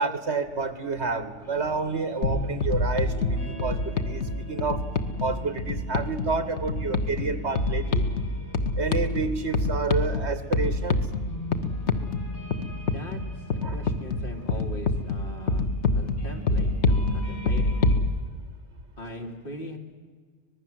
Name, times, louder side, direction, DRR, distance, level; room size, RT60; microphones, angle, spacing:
voice 1, 0.0-4.9 5.2-8.1 8.8-11.0 13.6-13.8, right 4 dB, 65° right, 11 dB, 2.1 m, -29 dB
sound 1, 1.4-18.0, left 1 dB, 10° right, 6.0 m, -42 dB
sound 2, 2.2-18.1, left 2 dB, 70° left, 1.6 m, -27 dB
voice 2, 12.8-17.9 19.0-19.8, left 1 dB, 45° left, 2 dB, 3.0 m, -40 dB
25.5 x 20.0 x 7.8 m, 1.5 s
omnidirectional pair, 1.2 m